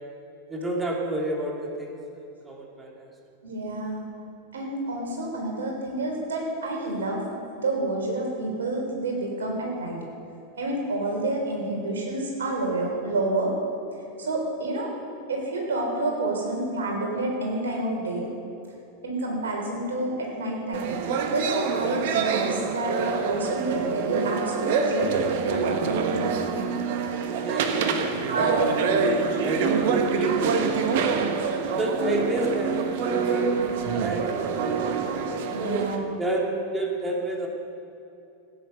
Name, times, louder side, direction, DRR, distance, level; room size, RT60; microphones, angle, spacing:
voice 1, 0.5-2.0 2.4-3.1 27.4-31.3 31.6-33.6 33.9-35.1 35.6-37.5, right 1 dB, 10° right, -1 dB, 2.5 m, -30 dB
voice 2, 3.4-4.1 4.5-7.2 7.6-10.0 10.6-13.5 14.2-14.9 15.3-18.3 19.0-20.9 21.3-26.8 27.7-28.6 29.7-30.0 35.5-36.0, right 2 dB, 65° right, 0 dB, 3.7 m, -29 dB
sound 1, 20.7-36.0, right 5 dB, 50° right, 1.3 m, -26 dB
16.0 x 9.2 x 6.7 m, 2.7 s
figure-of-eight pair, 90°, 0 cm